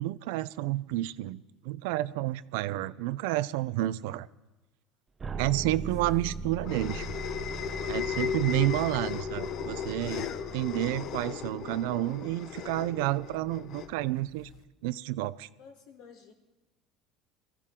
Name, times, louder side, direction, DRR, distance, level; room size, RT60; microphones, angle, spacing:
voice 1, 0.0-4.3 5.4-7.0 7.9-10.3 10.5-14.5 14.8-15.5, right 16 dB, 85° right, 17 dB, 0.5 m, -30 dB
Jarring Bass Sound, 5.2-12.1, right 4 dB, 25° right, 0.7 m, -40 dB
sound 1, 5.8-14.6, left 8 dB, 50° left, 0.8 m, -36 dB
voice 2, 15.6-16.3, left 6 dB, 75° left, 3 dB, 3.4 m, -52 dB
22.5 x 15.5 x 3.8 m, 1.1 s
cardioid pair, 135°, 0 cm